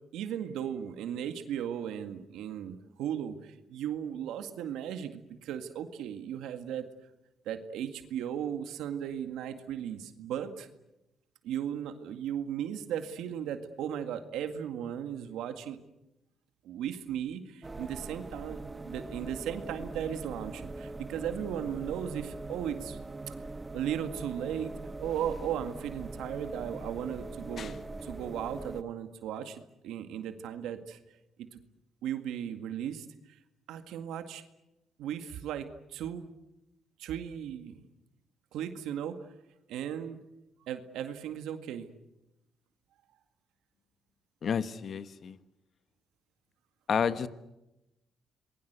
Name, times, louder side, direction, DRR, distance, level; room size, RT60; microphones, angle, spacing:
voice 1, 0.1-6.9 7.5-10.7 11.4-15.8 16.6-23.0 23.3-23.4 23.7-24.7 25.0-31.0 31.4-31.6 32.0-33.4 33.7-34.4 35.0-36.3 37.0-37.8 38.5-39.2 39.7-40.2 40.6-41.9, right 9 dB, 85° right, 2.0 m, -36 dB
sound 1, 17.6-28.8, right 2 dB, 20° right, 1.3 m, -42 dB
voice 2, 44.4-45.4 46.9-47.3, left 7 dB, 55° left, 1.4 m, -30 dB
27.5 x 21.5 x 8.2 m
cardioid pair, 90°, 0 cm